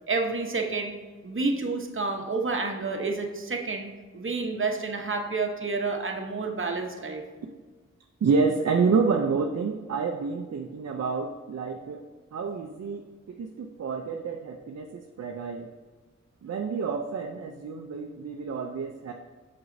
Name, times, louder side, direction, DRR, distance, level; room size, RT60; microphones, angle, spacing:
voice 1, 0.1-0.9 1.2-7.2, right 3 dB, 45° right, 3 dB, 0.9 m, -29 dB
voice 2, 8.2-12.0 12.3-15.7 16.4-19.1, right 5 dB, 60° right, 4 dB, 0.5 m, -28 dB
6.1 x 6.0 x 2.6 m, 1.4 s
cardioid pair, 50°, 29 cm